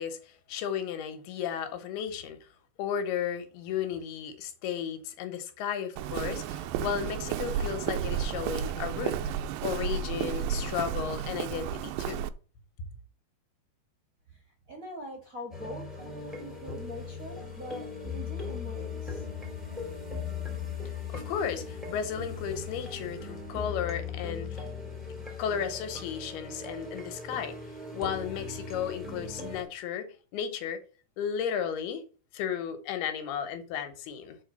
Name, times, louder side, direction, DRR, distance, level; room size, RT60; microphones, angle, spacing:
voice 1, 0.0-2.5 2.8-9.2 9.6-12.3 21.1-24.7 25.1-27.6 27.9-30.8 31.2-32.0 32.3-34.4, left 8 dB, 80° left, 3.1 m, -34 dB
Walk footsteps, 6.0-12.3, right 9 dB, 80° right, 2.2 m, -32 dB
voice 2, 14.7-19.3, equal, 35° right, 1.5 m, -43 dB
sound 1, 15.5-29.6, left 5 dB, ahead, 2.7 m, -38 dB
7.1 x 4.6 x 6.7 m
omnidirectional pair, 4.4 m